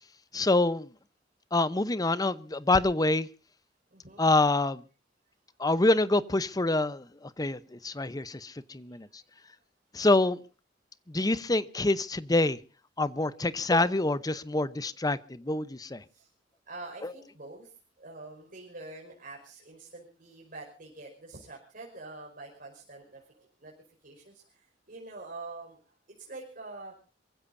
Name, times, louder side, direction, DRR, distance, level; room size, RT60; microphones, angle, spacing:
voice 1, 0.3-0.9 1.5-3.3 4.2-4.8 5.6-9.1 9.9-10.4 11.1-12.6 13.0-16.0 17.0-17.1, left 2 dB, 20° left, 0.8 m, -26 dB
voice 2, 3.9-4.3 13.3-13.4 16.1-16.3 16.7-17.7 18.0-23.7 24.0-25.8 26.2-26.9, right 2 dB, 50° right, 5.4 m, -45 dB
27.5 x 15.5 x 2.7 m
head